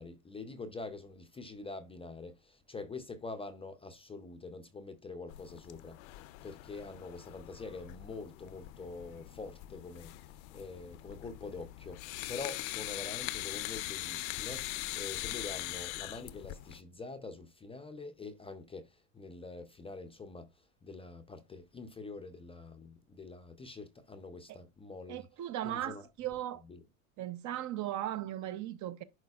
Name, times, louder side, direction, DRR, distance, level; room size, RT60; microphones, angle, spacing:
voice 1, 0.0-10.1 10.5-25.3 25.6-26.0, left 3 dB, 15° left, 0.5 m, -45 dB
sound 1, 5.3-16.8, left 17 dB, 70° left, 0.6 m, -42 dB
voice 2, 25.1-26.6 27.2-29.0, right 12 dB, 45° right, 0.7 m, -37 dB
10.5 x 4.3 x 2.3 m
supercardioid pair, 120°, 43 cm